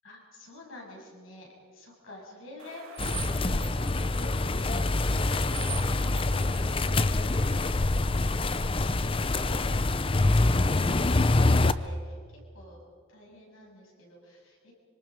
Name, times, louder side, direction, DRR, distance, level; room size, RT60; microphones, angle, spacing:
voice 1, 0.0-6.7 7.1-11.5 11.8-12.8 13.1-14.7, left 1 dB, 70° left, -2 dB, 7.5 m, -49 dB
sound 1, 2.6-7.7, right 8 dB, 85° right, 2.8 m, -44 dB
sound 2, 3.0-11.7, left 2 dB, 25° left, 0.6 m, -25 dB
25.5 x 25.5 x 5.2 m, 2.1 s
head